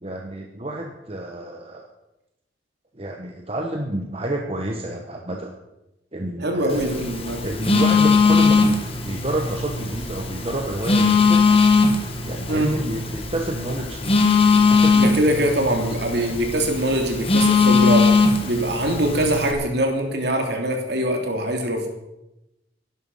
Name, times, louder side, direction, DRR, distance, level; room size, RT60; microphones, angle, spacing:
voice 1, 0.0-1.9 3.0-5.5 6.1-6.8 7.4-8.8 9.0-11.4 12.2-14.1 14.4-15.0 15.3-15.4, right 1 dB, 30° right, 2 dB, 1.3 m, -29 dB
voice 2, 6.4-7.5 12.5-12.8 14.9-21.9, right 1 dB, 60° right, 3 dB, 3.1 m, -23 dB
Telephone, 6.7-19.5, left 4 dB, 30° left, 2.0 m, -20 dB
17.0 x 11.5 x 5.6 m, 0.94 s
head